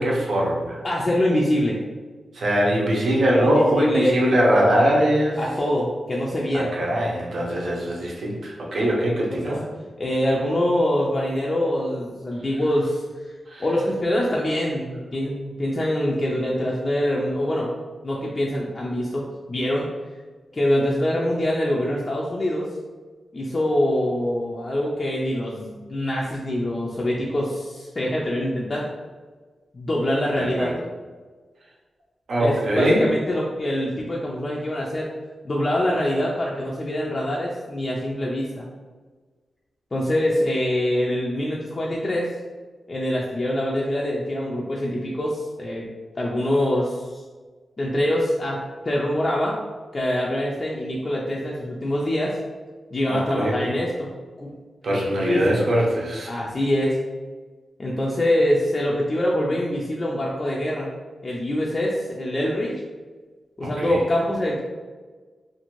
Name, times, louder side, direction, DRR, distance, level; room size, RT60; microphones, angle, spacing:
voice 1, 0.0-0.8 2.3-5.4 6.5-9.6 13.5-13.6 30.4-30.8 32.3-33.1 53.1-53.7 54.8-56.3 63.6-64.0, equal, 65° right, -2 dB, 0.7 m, -22 dB
voice 2, 0.8-1.8 3.4-4.2 5.4-6.8 9.3-9.5 10.0-13.3 13.6-17.7 18.0-19.9 20.5-22.7 23.3-28.9 29.7-30.7 32.4-35.1 35.4-38.6 39.9-42.3 42.9-45.9 46.2-47.2 47.8-49.6 49.9-52.4 52.9-54.1 54.4-54.5 55.3-55.6 56.3-57.0 57.8-60.9 61.2-62.8 63.6-64.6, left 1 dB, 30° left, -4 dB, 0.3 m, -24 dB
2.5 x 2.4 x 3.0 m, 1.4 s
wide cardioid pair, 115°, 0 cm